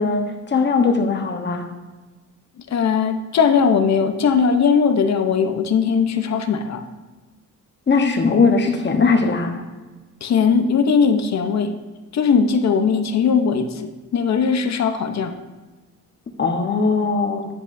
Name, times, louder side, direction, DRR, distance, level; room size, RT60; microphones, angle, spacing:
voice 1, 0.0-1.7 7.9-9.6 16.4-17.5, left 4 dB, 35° left, 4 dB, 1.1 m, -19 dB
voice 2, 2.7-6.8 10.2-11.7 12.1-15.4, left 6 dB, 60° left, 7 dB, 0.9 m, -19 dB
10.5 x 9.8 x 2.7 m, 1.2 s
cardioid pair, 135°, 31 cm